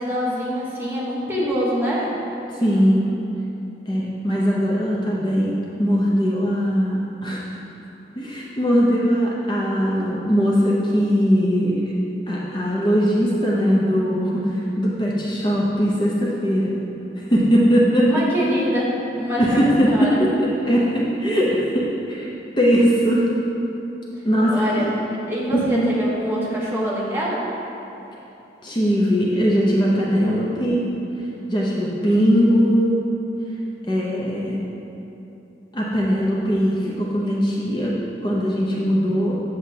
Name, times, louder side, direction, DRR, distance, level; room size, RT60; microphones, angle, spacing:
voice 1, 0.0-2.1 18.1-20.2 24.5-24.9 25.3-27.5, equal, 15° right, -6 dB, 1.0 m, -25 dB
voice 2, 2.5-3.1 3.9-5.5 5.8-7.4 8.1-12.0 12.3-16.7 17.2-18.2 19.4-22.3 22.6-23.3 24.2-24.9 25.5-25.9 28.6-30.9 31.2-33.0 33.9-34.6 35.7-38.0 38.2-39.3, equal, 25° left, -5 dB, 0.6 m, -20 dB
7.7 x 6.5 x 2.8 m, 2.9 s
head